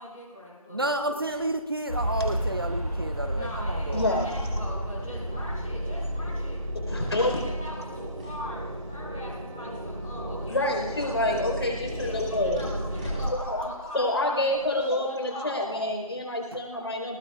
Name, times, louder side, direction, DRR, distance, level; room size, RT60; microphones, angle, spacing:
voice 1, 0.0-1.2 3.2-6.6 6.9-11.4 11.7-15.6, left 1 dB, 5° left, -12 dB, 0.9 m, -42 dB
voice 2, 0.7-4.0, right 1 dB, 40° right, 8 dB, 0.8 m, -30 dB
sound 1, 0.8-14.8, right 1 dB, 10° right, 4.4 m, -45 dB
sound 2, 1.9-6.7, right 1 dB, 80° right, 6.5 m, -32 dB
sound 3, 3.6-13.3, equal, 60° right, 3.9 m, -34 dB
voice 3, 3.9-4.5 6.9-7.4 10.5-12.6 13.3-17.2, left 1 dB, 45° left, 2 dB, 4.5 m, -28 dB
27.0 x 19.5 x 2.5 m, 1.2 s
figure-of-eight pair, 170°, 19 cm